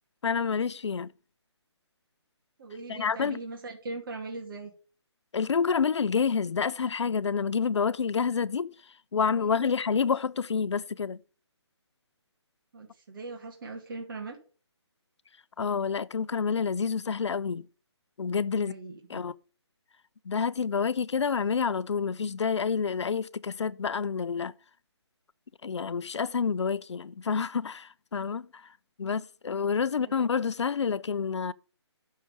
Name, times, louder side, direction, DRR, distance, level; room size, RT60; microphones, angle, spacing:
voice 1, 0.2-1.1 2.9-3.4 5.3-8.7 9.1-11.2 15.6-17.7 18.2-18.7 19.1-19.4 20.3-24.5 25.6-28.6 29.0-31.5, left 6 dB, 75° left, 0.5 m, -28 dB
voice 2, 2.6-4.7 9.4-9.7 12.7-14.4 18.5-19.2 29.9-30.3, right 3 dB, 50° right, 2.4 m, -40 dB
6.5 x 6.3 x 6.7 m
figure-of-eight pair, 155°, 15 cm